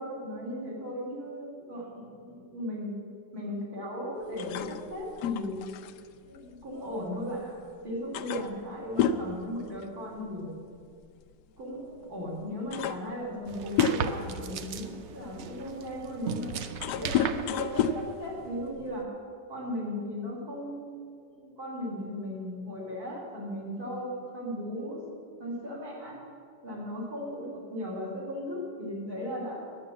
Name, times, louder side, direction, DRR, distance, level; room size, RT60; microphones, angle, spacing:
voice 1, 0.0-2.9 3.3-5.6 6.2-7.5 7.8-10.6 11.6-16.5 17.0-19.1 19.5-21.0 21.3-25.0 25.4-26.2 26.6-29.6, equal, 55° right, -4 dB, 3.5 m, -36 dB
sound 1, 4.4-7.4 7.7-7.8 8.1-10.3 10.6-10.9 11.8-11.9 12.4-14.3 14.9-19.0, left 7 dB, 75° left, 1.1 m, -31 dB
sound 2, 13.5-18.5, right 6 dB, 80° right, 0.6 m, -37 dB
10.5 x 7.4 x 8.5 m, 2.2 s
omnidirectional pair, 1.9 m